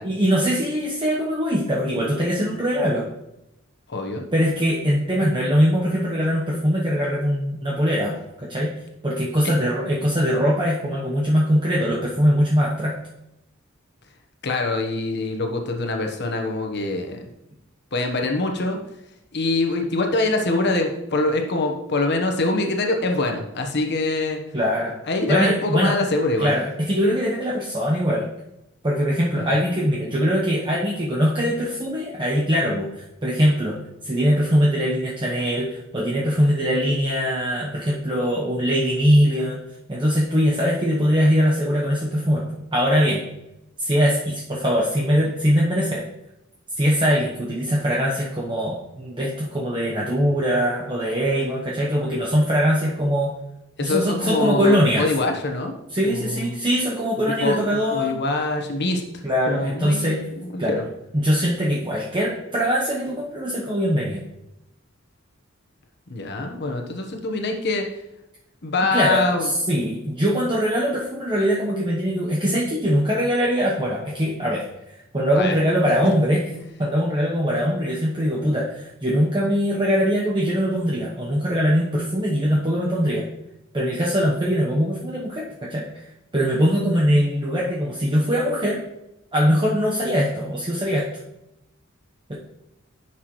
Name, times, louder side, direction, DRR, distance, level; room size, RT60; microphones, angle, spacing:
voice 1, 0.0-3.1 4.3-8.7 9.0-12.9 24.5-24.9 25.3-25.9 26.4-28.2 28.8-33.8 34.0-39.6 39.9-43.2 43.8-46.0 46.8-53.3 53.8-55.0 55.9-58.1 59.2-60.2 60.6-60.8 61.1-64.2 68.9-74.6 75.1-76.4 76.8-83.2 83.7-85.9 86.3-88.8 89.3-91.1 92.3-92.4, equal, 25° right, -4 dB, 1.0 m, -22 dB
voice 2, 3.9-4.2 9.4-9.5 14.4-17.2 17.9-18.8 19.3-24.4 25.1-26.5 29.5-29.6 53.8-55.7 56.0-56.5 57.2-57.6 57.9-59.0 59.5-60.9 66.1-67.9 68.6-69.5 75.3-75.5 76.5-76.6, left 2 dB, 55° left, 4 dB, 1.2 m, -24 dB
10.5 x 6.0 x 3.1 m, 0.87 s
head